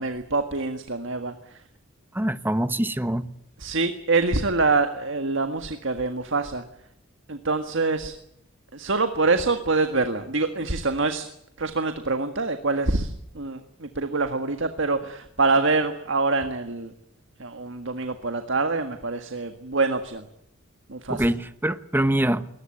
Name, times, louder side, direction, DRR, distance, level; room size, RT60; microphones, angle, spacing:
voice 1, 0.0-1.6 3.6-6.6 7.3-8.1 8.7-11.3 11.6-16.9 17.4-20.3 20.9-21.2, right 3 dB, 65° right, 1.7 m, -25 dB
voice 2, 2.1-3.3 21.1-22.5, right 1 dB, 10° right, 1.0 m, -24 dB
22.0 x 19.5 x 8.9 m
head